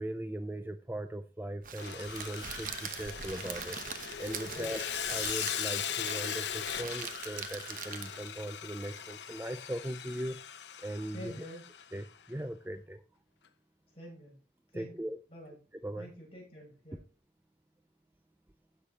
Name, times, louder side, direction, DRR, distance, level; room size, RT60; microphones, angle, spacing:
voice 1, 0.0-3.8 4.2-4.8 5.1-10.4 10.8-11.3 11.9-13.0 14.7-15.2 15.8-16.1, right 1 dB, 10° right, 9 dB, 0.5 m, -39 dB
Crackle, 1.6-8.4, right 7 dB, 50° right, 1.0 m, -43 dB
Sawing, 1.8-12.0, left 9 dB, 85° left, 0.8 m, -39 dB
voice 2, 4.4-4.8 11.1-11.6 13.9-14.4 14.7-15.6 16.0-17.0, equal, 35° left, -2 dB, 6.4 m, -47 dB
16.5 x 6.7 x 2.8 m, 0.31 s
head